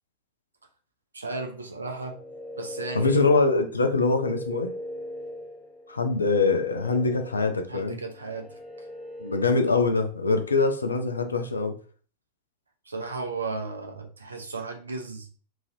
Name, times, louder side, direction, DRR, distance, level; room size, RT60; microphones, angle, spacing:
voice 1, 1.1-2.2 2.6-3.2 7.7-8.6 12.9-15.3, right 3 dB, 75° right, 0.6 m, -34 dB
sound 1, 1.9-9.8, left 1 dB, 5° left, 1.1 m, -40 dB
voice 2, 2.9-4.7 5.9-8.0 9.2-11.7, left 3 dB, 75° left, 0.4 m, -23 dB
3.0 x 2.5 x 2.7 m
figure-of-eight pair, 90°, 0 cm